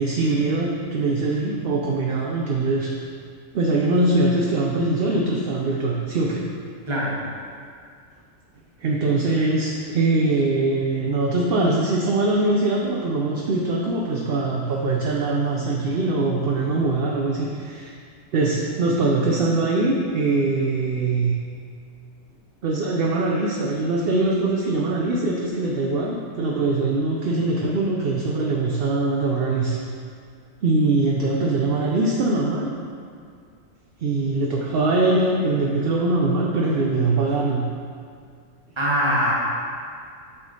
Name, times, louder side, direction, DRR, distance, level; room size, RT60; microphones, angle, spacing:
voice 1, 0.0-2.9 3.5-6.5 8.8-17.9 18.3-21.4 22.6-29.8 30.6-32.7 34.0-37.7, right 2 dB, 60° right, -2 dB, 0.7 m, -22 dB
voice 2, 38.8-39.3, equal, 25° right, -5 dB, 1.1 m, -22 dB
7.6 x 3.7 x 3.9 m, 2.2 s
omnidirectional pair, 1.4 m